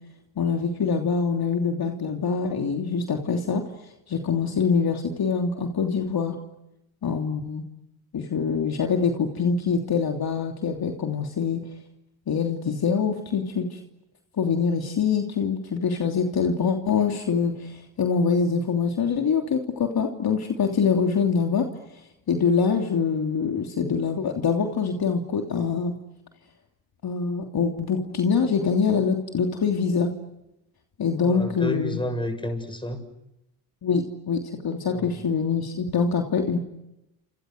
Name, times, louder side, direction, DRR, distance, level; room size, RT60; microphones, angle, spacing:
voice 1, 0.4-3.6 4.1-6.4 7.0-7.7 8.1-11.6 12.3-13.8 14.4-21.7 22.3-26.0 27.0-30.1 31.0-32.0 33.8-36.6, left 5 dB, 50° left, 3 dB, 3.2 m, -24 dB
voice 2, 31.2-33.0 34.9-35.1, left 1 dB, 10° left, 8 dB, 7.2 m, -30 dB
30.0 x 27.5 x 6.6 m, 0.91 s
supercardioid pair, 65°, 47 cm